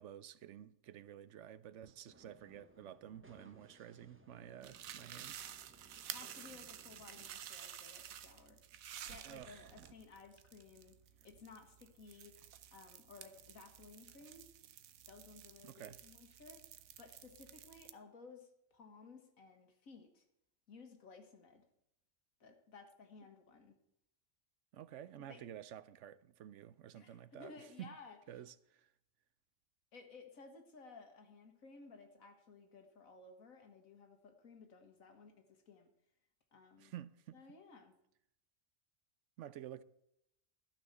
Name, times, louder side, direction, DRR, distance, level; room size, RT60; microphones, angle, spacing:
voice 1, 0.0-5.4 9.2-9.7 15.6-16.0 24.7-27.9 28.3-28.9 36.8-37.4 39.4-39.8, right 11 dB, 70° right, 0.8 m, -51 dB
sound 1, 2.1-7.3, right 2 dB, 15° right, 0.5 m, -64 dB
sound 2, 4.6-17.9, right 10 dB, 85° right, 1.2 m, -52 dB
voice 2, 6.1-8.6 9.1-11.0 11.2-12.4 12.7-14.5 15.1-20.2 20.7-21.6 22.4-23.7 25.3-25.4 26.9-28.2 29.9-35.9 36.5-36.9 37.3-37.9, left 4 dB, 85° left, 2.0 m, -57 dB
12.5 x 6.0 x 7.9 m
omnidirectional pair, 1.4 m